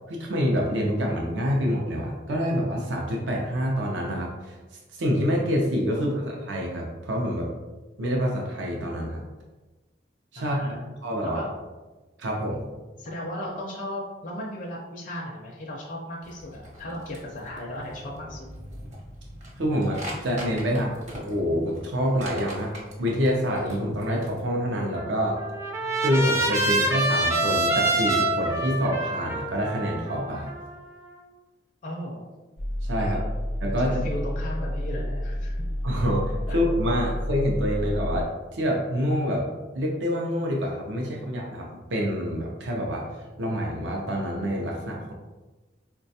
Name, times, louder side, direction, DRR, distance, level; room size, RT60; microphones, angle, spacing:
voice 1, 0.1-7.5 8.0-9.2 10.3-10.6 11.0-11.4 12.2-12.6 19.6-22.7 23.0-25.4 26.0-30.5 32.8-33.2 33.6-34.1 35.8-39.5 39.7-45.1, equal, 75° right, -1 dB, 0.5 m, -27 dB
voice 2, 5.9-6.4 10.4-10.9 11.2-11.5 13.0-18.5 25.8-26.0 31.8-32.3 33.0-33.4 33.8-35.6 36.5-36.6 37.0-37.1, left 1 dB, 45° left, -3 dB, 0.4 m, -36 dB
sound 1, 16.2-24.4, equal, 40° right, 0.8 m, -42 dB
Trumpet, 24.9-31.1, right 2 dB, 15° right, 0.4 m, -26 dB
sound 2, 32.6-38.2, equal, 90° left, 0.6 m, -30 dB
3.9 x 2.2 x 2.6 m, 1.2 s
head